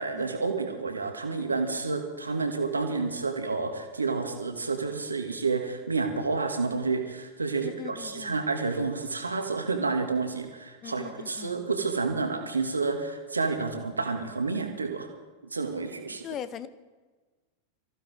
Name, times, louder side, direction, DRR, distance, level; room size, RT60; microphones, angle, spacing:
voice 1, 0.0-15.1 15.5-16.2, right 4 dB, 80° right, 5 dB, 2.0 m, -30 dB
voice 2, 7.6-8.5 10.8-11.6 16.1-16.7, left 9 dB, 30° left, 14 dB, 0.9 m, -40 dB
24.0 x 15.0 x 3.6 m, 1.3 s
figure-of-eight pair, 90°, 0 cm